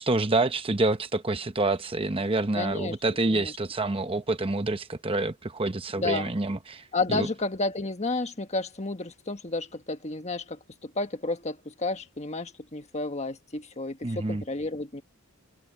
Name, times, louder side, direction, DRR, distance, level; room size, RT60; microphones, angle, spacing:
voice 1, 0.0-6.8 7.1-7.3 14.0-14.4, right 2 dB, 25° right, 0.9 m, -27 dB
voice 2, 2.5-3.0 3.3-3.5 5.9-6.3 6.9-15.0, left 3 dB, 30° left, 1.5 m, -31 dB
head